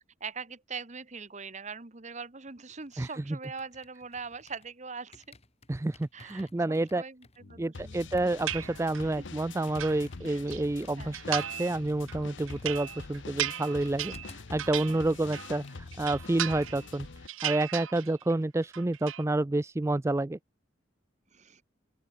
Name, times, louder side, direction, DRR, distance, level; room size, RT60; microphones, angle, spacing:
voice 1, 0.2-5.4 6.1-8.0 9.0-9.3 10.2-10.4 11.0-11.2 14.9-15.0 21.3-21.6, right 5 dB, 35° right, 1.3 m, -42 dB
sound 1, 2.5-4.8 5.1-14.6 14.9-16.7 17.0-17.3, left 3 dB, 30° left, 3.1 m, -58 dB
voice 2, 5.7-7.0 7.6-17.1 17.4-20.4, right 2 dB, 15° right, 0.3 m, -29 dB
sound 2, 7.4-17.3, left 4 dB, 70° left, 0.8 m, -45 dB
sound 3, 8.5-9.2 9.5-10.6 11.1-11.8 12.1-15.6 15.9-17.0 17.3-18.3 18.6-19.2, right 12 dB, 85° right, 0.7 m, -36 dB
open air
head